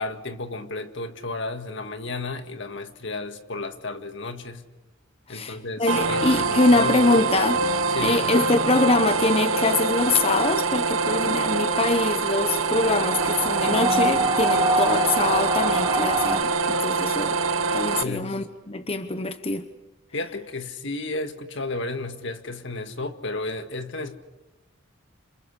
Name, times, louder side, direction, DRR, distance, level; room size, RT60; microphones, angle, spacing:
voice 1, 0.0-4.6 5.3-7.0 7.9-8.3 18.0-18.4 20.1-24.2, left 2 dB, 65° left, 1.8 m, -33 dB
voice 2, 5.3-7.7 8.0-17.4 17.7-19.6, left 2 dB, 30° left, 1.0 m, -24 dB
sound 1, 5.9-18.0, right 4 dB, 90° right, 1.1 m, -24 dB
sound 2, 12.8-16.4, right 2 dB, 20° right, 2.8 m, -25 dB
28.0 x 26.5 x 6.5 m
head